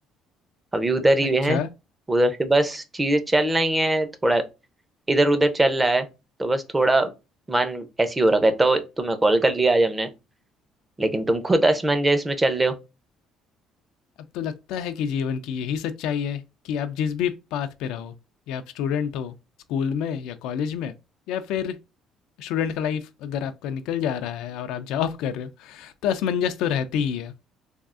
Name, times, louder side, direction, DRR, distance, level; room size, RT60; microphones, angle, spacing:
voice 1, 0.7-1.6 2.1-4.4 5.1-6.1 6.4-7.1 7.5-10.1 11.0-12.8, right 2 dB, 15° right, 0.5 m, -21 dB
voice 2, 14.3-18.1 18.5-19.3 19.7-20.9 21.3-21.8 22.4-27.3, left 8 dB, 80° left, 0.3 m, -28 dB
3.4 x 2.3 x 2.4 m
cardioid pair, 130°, 0 cm